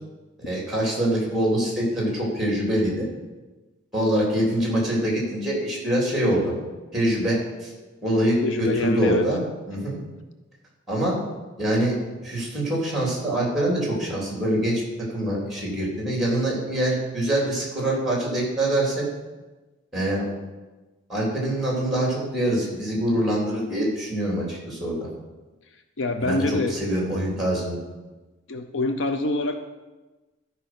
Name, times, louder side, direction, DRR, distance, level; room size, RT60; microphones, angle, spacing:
voice 1, 0.4-3.1 3.9-6.5 6.9-7.7 8.0-9.4 9.7-10.0 10.9-11.2 11.6-19.1 19.9-20.2 21.1-25.1 26.2-27.8, right 1 dB, ahead, -3 dB, 3.2 m, -24 dB
voice 2, 8.4-9.2 26.0-26.8 28.5-29.6, left 2 dB, 65° left, 7 dB, 0.6 m, -25 dB
13.0 x 5.4 x 6.1 m, 1.2 s
head